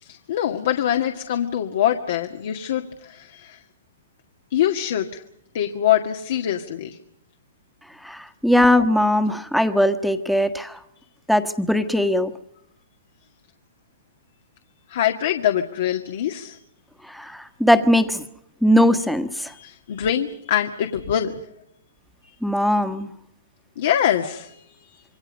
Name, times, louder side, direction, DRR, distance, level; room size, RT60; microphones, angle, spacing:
voice 1, 0.0-3.6 4.5-5.2 5.5-7.0 14.9-16.6 19.5-21.3 23.8-25.0, left 10 dB, 65° left, 5 dB, 1.9 m, -24 dB
voice 2, 8.0-10.8 11.3-12.3 17.0-18.2 18.6-19.5 22.4-23.1, left 1 dB, ahead, 8 dB, 1.5 m, -20 dB
27.0 x 23.0 x 5.4 m, 0.79 s
hypercardioid pair, 135°, 0 cm